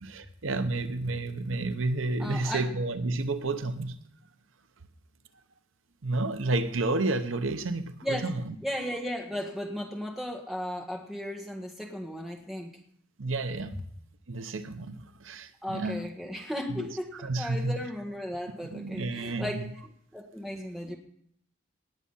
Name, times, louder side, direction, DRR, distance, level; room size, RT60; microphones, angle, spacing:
voice 1, 0.0-3.9 6.0-8.5 13.2-13.8 14.3-16.1 16.7-16.9 17.1-17.8 18.7-19.6, right 2 dB, 80° right, 0.9 m, -31 dB
voice 2, 2.2-2.7 8.0-8.2 8.6-12.7 15.6-19.7 20.1-21.0, equal, ahead, 1.7 m, -35 dB
19.0 x 7.5 x 5.6 m
head